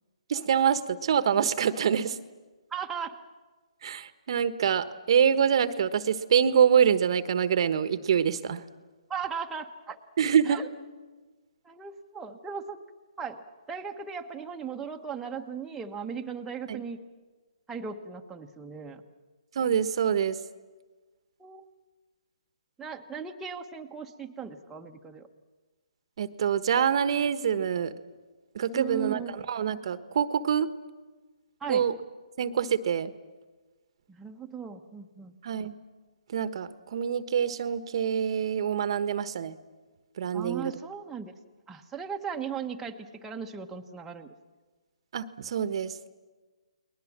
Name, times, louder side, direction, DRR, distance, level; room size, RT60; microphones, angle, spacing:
voice 1, 0.3-2.2 3.8-8.6 10.2-10.6 16.7-16.8 19.5-20.4 26.2-27.9 28.5-29.2 29.5-30.7 31.7-31.9 32.4-33.1 35.4-35.7 36.3-39.5 40.2-40.7 45.1-45.9, right 8 dB, 50° right, 12 dB, 1.2 m, -25 dB
voice 2, 2.7-3.2 9.1-10.0 10.5-10.7 11.6-12.8 13.2-13.4 13.7-17.0 17.7-19.0 21.4-21.6 22.8-25.3 28.7-29.3 31.6-31.9 34.1-35.3 40.3-41.3 41.7-44.3, right 6 dB, 5° right, 1 dB, 1.2 m, -37 dB
30.0 x 21.0 x 7.4 m, 1.3 s
hypercardioid pair, 150°, 4 cm